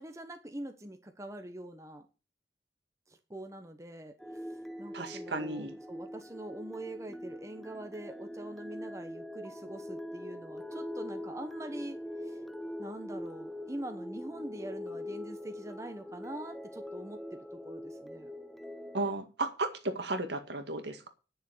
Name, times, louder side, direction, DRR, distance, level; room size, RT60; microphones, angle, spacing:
voice 1, 0.0-2.1 3.1-4.1 4.8-12.0 12.2-12.4 12.8-18.3, right 1 dB, 15° right, 1.0 m, -44 dB
sound 1, 4.2-19.1, left 1 dB, ahead, 0.5 m, -43 dB
voice 2, 4.9-5.7 18.9-21.1, right 2 dB, 70° right, 1.9 m, -34 dB
10.0 x 6.9 x 7.9 m
head